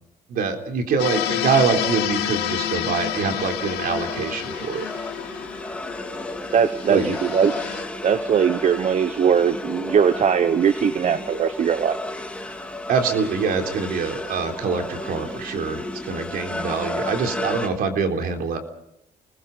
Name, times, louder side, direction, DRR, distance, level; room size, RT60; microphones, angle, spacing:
voice 1, 0.3-4.9 6.9-7.1 12.6-18.6, right 5 dB, 60° right, 4 dB, 3.8 m, -25 dB
sound 1, 1.0-7.8, left 12 dB, 85° left, 2.3 m, -29 dB
sound 2, 2.8-17.7, left 1 dB, 5° left, 2.9 m, -33 dB
voice 2, 6.5-7.5 8.0-12.0, right 7 dB, 45° right, 12 dB, 1.0 m, -20 dB
29.0 x 20.5 x 5.5 m, 0.80 s
cardioid pair, 110°, 17 cm